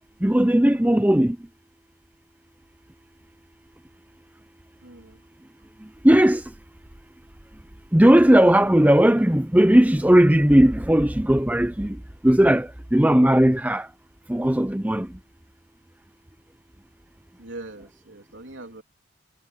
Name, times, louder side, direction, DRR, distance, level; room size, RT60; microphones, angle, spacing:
voice 1, 0.2-1.4 6.0-6.4 7.9-12.0 12.2-13.9 14.3-15.1, right 1 dB, 10° right, 0.6 m, -17 dB
voice 2, 4.8-5.2 17.4-18.8, right 2 dB, 65° right, 3.3 m, -41 dB
head